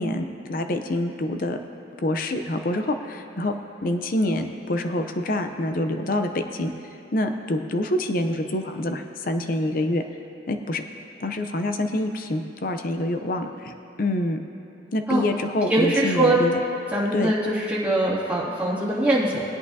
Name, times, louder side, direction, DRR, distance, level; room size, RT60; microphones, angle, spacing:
voice 1, 0.0-1.6 2.0-3.6 3.8-6.7 7.1-10.0 10.5-10.8 11.2-14.4 14.9-16.5 17.1-17.3, left 1 dB, 50° left, 6 dB, 0.6 m, -26 dB
voice 2, 15.7-16.4 16.9-19.4, right 1 dB, 10° right, -10 dB, 2.4 m, -22 dB
19.5 x 8.7 x 2.8 m, 2.9 s
head